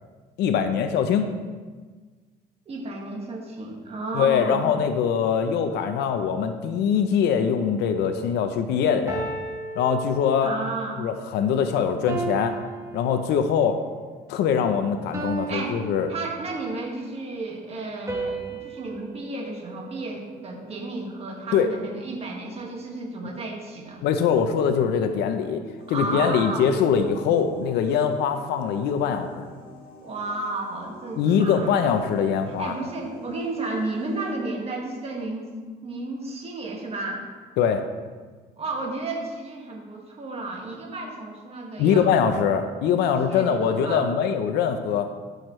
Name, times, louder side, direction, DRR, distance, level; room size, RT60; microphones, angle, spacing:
voice 1, 0.4-1.3 4.1-9.3 9.8-10.5 11.0-12.6 12.9-13.8 14.3-16.1 21.5-21.7 24.0-25.6 25.9-29.4 31.2-32.7 37.6-37.8 41.8-45.1, left 7 dB, 80° left, 7 dB, 0.7 m, -23 dB
voice 2, 2.7-4.7 10.4-11.0 15.5-15.8 16.1-24.0 25.9-26.7 30.0-31.8 32.6-35.5 35.8-37.3 38.6-42.1 43.0-44.0, right 2 dB, 35° right, 0 dB, 1.8 m, -32 dB
sound 1, 7.6-7.9 9.1-10.7 12.1-13.7 15.1-16.8 18.1-20.5, right 3 dB, 20° right, 1.5 m, -35 dB
sound 2, 25.8-34.3, equal, 65° left, 2.7 m, -45 dB
13.5 x 6.5 x 3.2 m, 1.4 s
cardioid pair, 110°, 17 cm